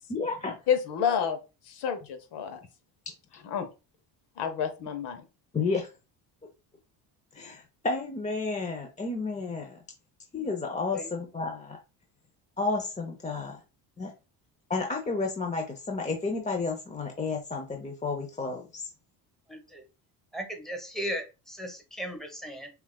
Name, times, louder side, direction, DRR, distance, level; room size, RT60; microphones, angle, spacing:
voice 1, 0.1-0.6 5.5-5.9 7.3-9.8 10.3-11.8 12.6-13.6 14.0-14.1 14.7-18.9, left 3 dB, 15° left, 3 dB, 0.6 m, -31 dB
voice 2, 0.7-1.4 1.7-2.6 3.5-3.7 4.4-5.2, left 7 dB, 65° left, 8 dB, 0.9 m, -29 dB
voice 3, 19.5-19.8 20.3-22.7, equal, ahead, 3 dB, 1.3 m, -36 dB
5.7 x 2.4 x 2.3 m, 0.29 s
supercardioid pair, 80°, 44 cm